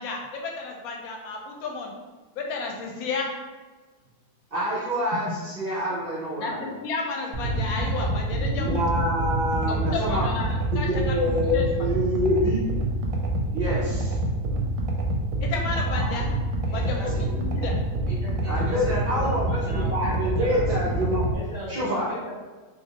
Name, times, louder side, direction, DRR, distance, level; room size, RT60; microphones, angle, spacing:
voice 1, 0.0-1.9 2.4-3.3 6.4-8.8 9.7-10.5 10.8-11.2 11.5-11.6 15.4-16.2 16.7-17.7, left 4 dB, 70° left, 0 dB, 1.0 m, -32 dB
voice 2, 4.5-6.7 8.4-12.6 13.5-14.2 18.4-21.3 21.7-22.1, equal, 50° right, -7 dB, 0.7 m, -27 dB
sound 1, 7.3-21.3, right 1 dB, 70° right, 1.0 m, -27 dB
voice 3, 16.7-17.4 18.1-20.7 21.3-22.3, equal, 20° right, -10 dB, 1.0 m, -38 dB
3.3 x 2.6 x 2.8 m, 1.3 s
omnidirectional pair, 1.8 m